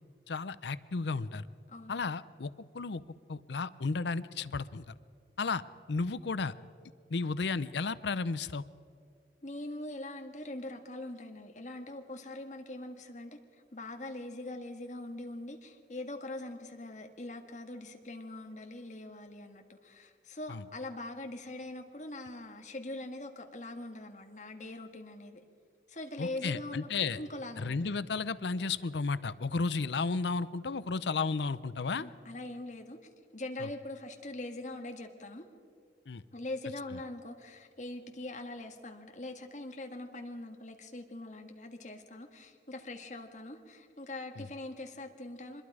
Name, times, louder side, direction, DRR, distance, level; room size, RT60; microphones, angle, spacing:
voice 1, 0.3-1.5 1.9-3.0 3.3-4.9 5.4-5.6 5.9-6.5 7.1-8.6 20.5-20.6 26.2-27.2 27.6-32.1 33.6-33.7 36.1-36.2 44.4-44.5, left 4 dB, 80° left, 16 dB, 0.6 m, -33 dB
voice 2, 9.4-13.4 13.7-25.4 25.9-26.9 27.2-27.9 31.9-33.0 33.3-35.4 36.3-45.6, left 2 dB, 45° left, 4 dB, 1.7 m, -42 dB
25.0 x 21.5 x 4.9 m, 2.3 s
head